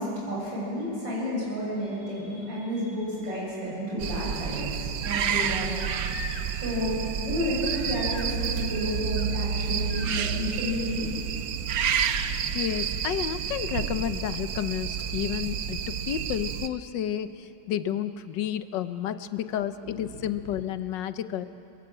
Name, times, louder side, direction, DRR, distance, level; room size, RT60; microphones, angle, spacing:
voice 1, 0.0-5.7 6.6-11.0 19.8-19.9, equal, 85° right, -6 dB, 8.5 m, -31 dB
Crying sobbing, 2.6-2.7 5.4-6.7 7.6-8.5 8.7-9.3 9.9-10.2 11.8-11.9, left 3 dB, 40° left, 1.9 m, -42 dB
sound 1, 4.0-16.7, right 8 dB, 60° right, 1.1 m, -30 dB
voice 2, 12.5-21.5, left 10 dB, 75° left, 12 dB, 1.4 m, -31 dB
23.0 x 22.0 x 7.8 m, 2.9 s
omnidirectional pair, 2.0 m